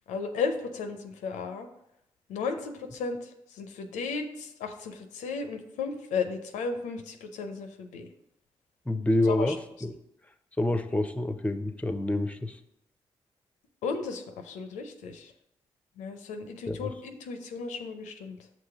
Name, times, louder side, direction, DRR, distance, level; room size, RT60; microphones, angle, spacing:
voice 1, 0.1-1.7 2.3-3.3 3.6-8.1 9.3-9.5 13.8-15.3 16.0-18.4, left 5 dB, 85° left, 6 dB, 0.5 m, -34 dB
voice 2, 8.9-10.0 10.6-12.6 16.7-17.0, left 1 dB, 10° left, 10 dB, 0.6 m, -28 dB
6.0 x 3.0 x 5.6 m, 0.79 s
supercardioid pair, 40°, 12 cm